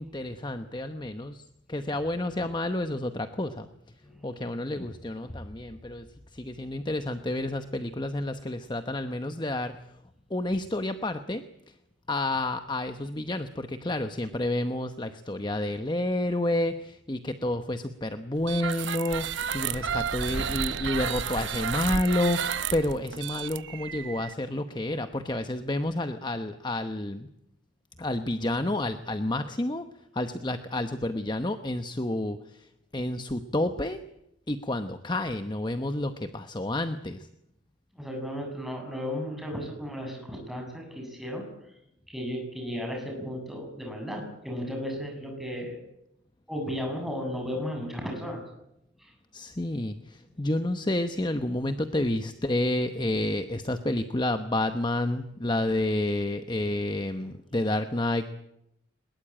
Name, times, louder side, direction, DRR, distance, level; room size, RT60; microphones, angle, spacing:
voice 1, 0.0-1.4 1.7-3.7 4.2-6.1 6.3-9.7 10.3-11.4 12.1-27.3 28.0-29.9 30.1-32.4 32.9-34.0 34.5-37.3 49.3-58.2, left 1 dB, 25° left, 9 dB, 0.9 m, -30 dB
voice 2, 4.0-4.5 37.9-41.5 42.1-45.8 46.5-48.4 49.0-49.1, equal, ahead, 1 dB, 7.7 m, -35 dB
sound 1, 18.4-24.3, right 7 dB, 70° right, 0.8 m, -32 dB
22.5 x 21.0 x 8.9 m, 0.82 s
head